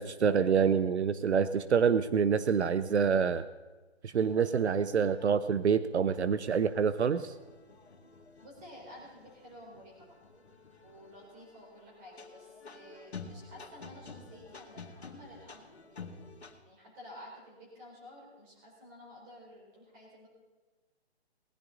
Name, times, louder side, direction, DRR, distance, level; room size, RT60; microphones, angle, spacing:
voice 1, 0.0-3.4 4.0-7.3, right 6 dB, 80° right, 13 dB, 0.8 m, -27 dB
sound 1, 4.2-16.6, left 4 dB, 75° left, 2.0 m, -51 dB
voice 2, 8.4-10.3 10.8-15.9 16.6-20.3, equal, 20° right, -3 dB, 4.2 m, -52 dB
19.5 x 10.5 x 3.9 m, 1.2 s
hypercardioid pair, 170°, 33 cm